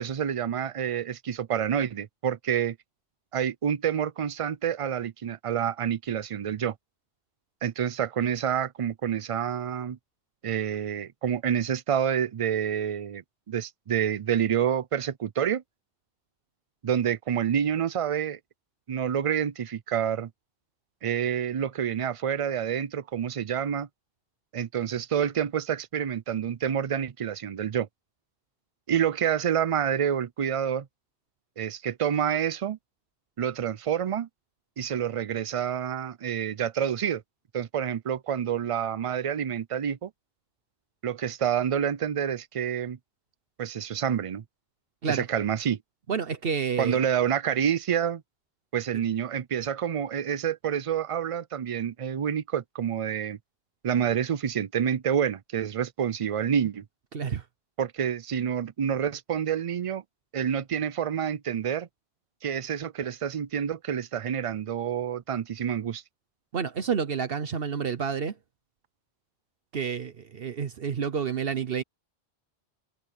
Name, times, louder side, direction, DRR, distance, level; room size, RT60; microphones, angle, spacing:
voice 1, 0.0-2.8 3.3-6.7 7.6-10.0 10.4-15.6 16.8-18.4 18.9-20.3 21.0-23.9 24.5-27.9 28.9-30.9 31.6-32.8 33.4-34.3 34.8-37.2 37.5-40.1 41.0-43.0 43.6-44.4 45.1-45.8 46.8-48.2 48.7-53.4 53.8-56.8 57.8-60.0 60.3-61.9 62.4-66.0, right 8 dB, 45° right, 0.4 m, -28 dB
voice 2, 46.1-47.0 57.1-57.4 66.5-68.4 69.7-71.8, right 6 dB, 65° right, 1.1 m, -29 dB
omnidirectional pair, 1.1 m